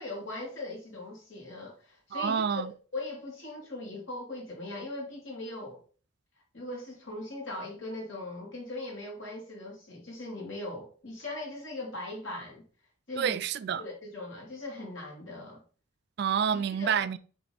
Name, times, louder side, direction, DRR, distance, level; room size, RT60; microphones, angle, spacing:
voice 1, 0.0-2.7 2.9-5.8 6.5-12.6 13.1-13.4 13.8-15.6 16.5-17.1, left 2 dB, 65° left, 2.4 m, -39 dB
voice 2, 2.1-2.7 13.2-13.8 16.2-17.2, right 7 dB, 50° right, 0.3 m, -28 dB
7.5 x 3.1 x 4.1 m
head